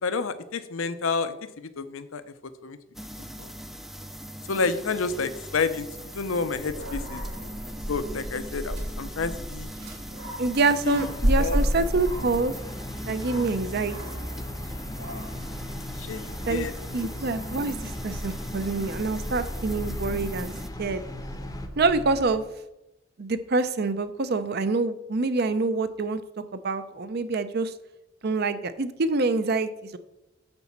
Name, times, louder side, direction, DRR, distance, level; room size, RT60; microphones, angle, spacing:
voice 1, 0.0-2.2 2.6-2.8 3.4-3.5 4.5-5.9 6.1-7.2 7.9-9.7 10.8-11.6 16.0-16.7, left 4 dB, 75° left, 12 dB, 0.6 m, -29 dB
sound 1, 2.9-20.7, equal, ahead, 0.3 m, -41 dB
Dog, 6.5-22.3, equal, 90° right, 3.7 m, -34 dB
voice 2, 10.4-12.5 13.1-14.0 16.5-16.6 16.9-20.5 20.8-21.0 21.8-22.4 23.2-26.2 26.5-27.7 28.2-30.0, right 3 dB, 50° right, 12 dB, 0.5 m, -26 dB
sound 2, 10.9-21.7, left 1 dB, 15° left, 0.7 m, -38 dB
8.8 x 4.1 x 7.2 m, 0.93 s
head